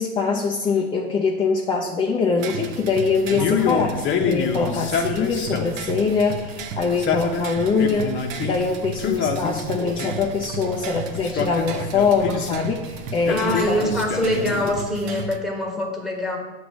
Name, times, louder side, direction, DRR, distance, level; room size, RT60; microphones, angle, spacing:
voice 1, 0.0-13.8, left 4 dB, 15° left, 0 dB, 0.4 m, -23 dB
sound 1, 2.4-15.4, right 4 dB, 75° right, 0.8 m, -34 dB
Male speech man speaking, 3.3-5.9 6.8-8.6 9.0-10.3 11.1-12.7 13.3-14.8, left 6 dB, 30° left, 0.8 m, -26 dB
voice 2, 13.3-16.4, left 1 dB, ahead, -1 dB, 1.4 m, -24 dB
7.7 x 3.1 x 6.2 m, 1.2 s
supercardioid pair, 125°, 39 cm